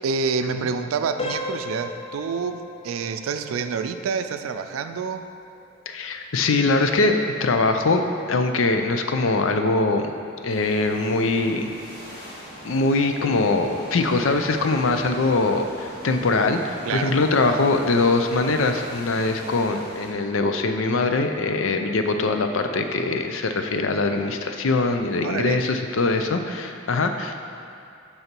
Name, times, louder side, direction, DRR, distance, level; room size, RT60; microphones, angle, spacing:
voice 1, 0.0-5.3 16.8-17.4 25.2-25.7, right 5 dB, 90° right, 9 dB, 0.4 m, -28 dB
sound 1, 1.2-11.8 12.2-12.4 13.0-13.1 13.6-13.8, left 2 dB, 25° left, 0.4 m, -39 dB
voice 2, 5.9-8.0 8.3-10.1 10.4-11.7 12.6-27.4, left 3 dB, 80° left, 6 dB, 0.5 m, -22 dB
sound 2, 10.5-20.1, equal, 45° left, 1.6 m, -41 dB
6.6 x 5.7 x 4.5 m, 2.5 s
head